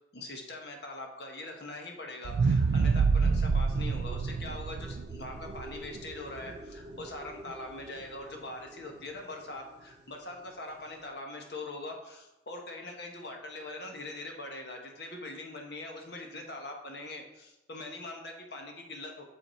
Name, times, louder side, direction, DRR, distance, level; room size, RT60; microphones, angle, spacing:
voice 1, 0.1-19.2, left 2 dB, 65° left, 2 dB, 1.3 m, -42 dB
sound 1, 2.2-6.5 7.0-7.1, right 4 dB, 65° right, 0.3 m, -27 dB
sound 2, 3.3-11.4, equal, 25° right, 1.1 m, -50 dB
6.4 x 5.4 x 4.4 m, 0.93 s
head